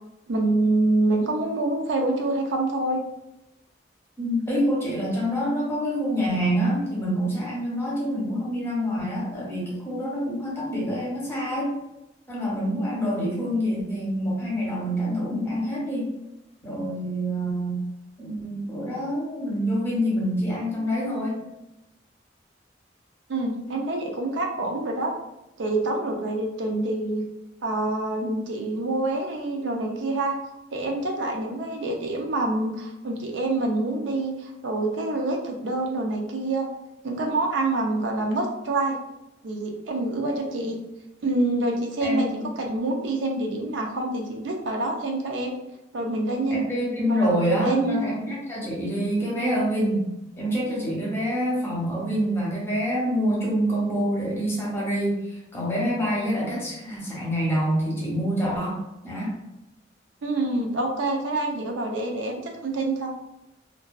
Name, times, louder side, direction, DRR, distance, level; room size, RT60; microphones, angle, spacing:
voice 1, 0.3-3.0 23.3-25.1 25.6-27.2 27.6-30.3 30.7-36.7 37.0-39.0 39.4-40.8 41.2-42.3 42.6-45.5 45.9-46.6 47.1-48.0 60.2-63.1, right 2 dB, 80° right, 1 dB, 0.5 m, -26 dB
voice 2, 4.2-11.8 12.3-16.1 16.6-17.8 18.2-21.4 42.0-42.3 46.5-50.0 50.4-55.2 55.5-59.3, equal, 15° left, -5 dB, 0.8 m, -26 dB
2.5 x 2.2 x 2.2 m, 0.93 s
head